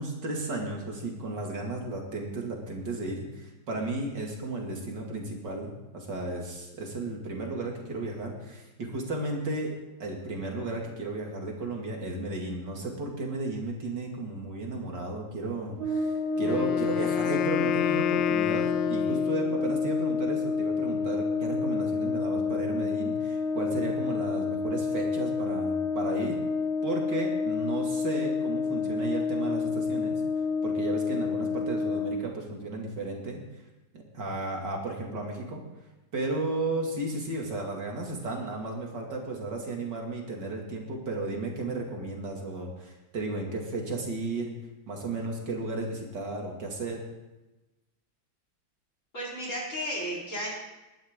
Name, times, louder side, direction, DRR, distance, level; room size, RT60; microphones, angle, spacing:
voice 1, 0.0-9.7 10.0-26.4 26.8-30.2 30.6-33.4 33.9-35.6 36.1-44.5 44.9-47.0, right 2 dB, 70° right, 0 dB, 3.0 m, -34 dB
Brass instrument, 15.8-32.2, left 4 dB, 85° right, 4.7 m, -29 dB
Wind instrument woodwind instrument, 16.4-19.7, left 13 dB, 85° left, 1.4 m, -30 dB
voice 2, 49.1-50.5, equal, 40° left, -4 dB, 4.6 m, -33 dB
20.5 x 11.5 x 3.7 m, 1.1 s
omnidirectional pair, 2.0 m